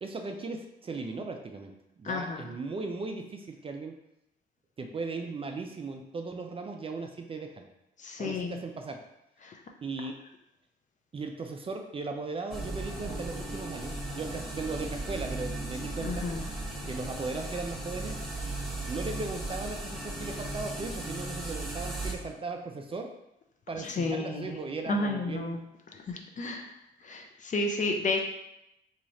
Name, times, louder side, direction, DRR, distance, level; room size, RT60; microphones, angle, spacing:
voice 1, 0.0-1.7 2.0-3.9 4.8-7.7 8.2-9.0 9.8-10.2 11.1-16.2 16.9-18.2 18.9-23.1 23.7-25.6, right 3 dB, 30° right, 4 dB, 0.4 m, -37 dB
voice 2, 2.0-2.6 8.0-8.6 9.4-9.6 16.0-16.5 23.8-24.6 24.9-25.6 25.9-26.7 27.0-28.2, left 2 dB, 40° left, 3 dB, 0.5 m, -32 dB
sound 1, 12.5-22.1, right 2 dB, ahead, 0.7 m, -36 dB
3.0 x 2.4 x 4.0 m, 0.86 s
cardioid pair, 90°, 20 cm